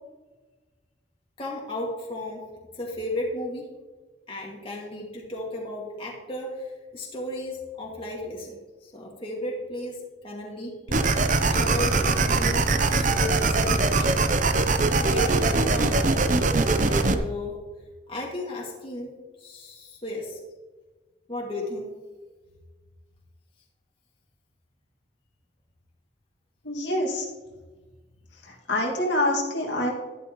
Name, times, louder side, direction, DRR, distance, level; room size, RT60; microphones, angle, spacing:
voice 1, 1.4-2.5 2.7-3.7 4.3-6.7 6.9-11.2 11.5-14.2 14.8-15.9 16.8-17.6 18.1-19.1 19.4-20.4 21.3-21.9, left 1 dB, 30° left, -2 dB, 2.2 m, -34 dB
sound 1, 10.9-17.2, right 3 dB, 45° right, 0.7 m, -22 dB
voice 2, 26.6-27.3 28.3-29.9, left 1 dB, 70° left, -1 dB, 2.2 m, -26 dB
12.0 x 11.5 x 3.1 m, 1.3 s
head